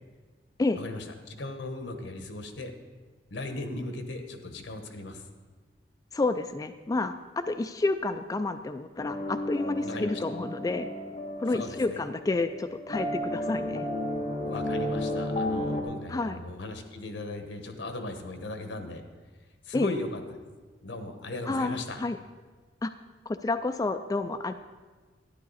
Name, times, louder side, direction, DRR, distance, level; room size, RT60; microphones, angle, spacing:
voice 1, 0.7-2.7 3.3-5.3 9.8-10.2 11.5-12.0 14.4-19.0 19.6-20.2 20.8-22.0, left 2 dB, 85° left, 7 dB, 1.1 m, -37 dB
voice 2, 6.1-10.9 11.4-13.9 16.1-16.4 19.7-19.9 21.5-22.2 22.8-22.9 23.3-24.5, left 3 dB, 20° left, 8 dB, 0.3 m, -30 dB
sound 1, 9.0-15.8, left 1 dB, 35° left, 1.0 m, -33 dB
12.0 x 10.5 x 4.1 m, 1.4 s
head